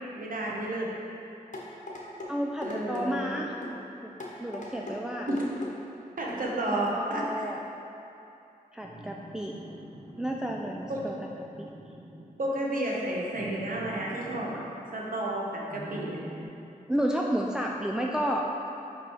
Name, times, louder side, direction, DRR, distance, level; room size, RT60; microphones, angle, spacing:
voice 1, 0.1-0.9 2.6-3.5 5.3-5.5 6.2-7.5 10.9-11.0 12.4-14.6 14.9-16.2, right 1 dB, 65° right, -3 dB, 1.3 m, -31 dB
sound 1, 1.5-2.3 2.6-3.1 3.6-3.8 4.2-5.0 5.3-5.7 6.3-6.5 6.9-7.0, left 2 dB, 55° left, 1.2 m, -38 dB
voice 2, 2.3-3.5 4.0-4.1 4.4-5.3 6.7-7.6 8.7-9.6 10.2-11.2 11.6-11.7 16.9-18.7, equal, 5° right, -1 dB, 0.4 m, -31 dB
sound 2, 8.8-12.4 13.3-14.5 15.7-16.4, right 1 dB, 25° right, 1.2 m, -45 dB
5.4 x 5.3 x 4.7 m, 2.8 s
cardioid pair, 50°, 15 cm